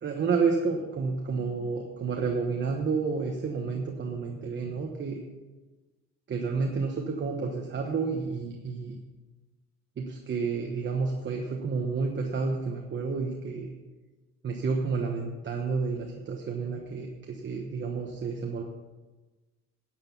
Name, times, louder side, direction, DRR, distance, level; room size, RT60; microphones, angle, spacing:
voice 1, 0.0-5.2 6.3-9.0 10.0-13.7 14.4-18.6, right 4 dB, 40° right, 1 dB, 1.2 m, -30 dB
10.5 x 9.2 x 5.4 m, 1.2 s
cardioid pair, 135°, 31 cm